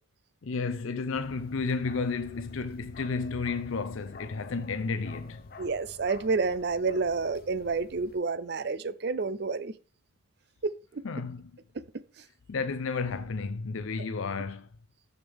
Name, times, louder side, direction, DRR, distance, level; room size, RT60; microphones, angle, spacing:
voice 1, 0.4-5.5 11.0-11.5 12.5-14.7, left 4 dB, 85° left, 0.6 m, -32 dB
Bark, 1.1-8.2, left 4 dB, 50° left, 0.8 m, -49 dB
voice 2, 5.6-9.7 10.6-11.0 14.0-14.1, right 4 dB, 55° right, 0.5 m, -29 dB
14.0 x 5.1 x 3.5 m
head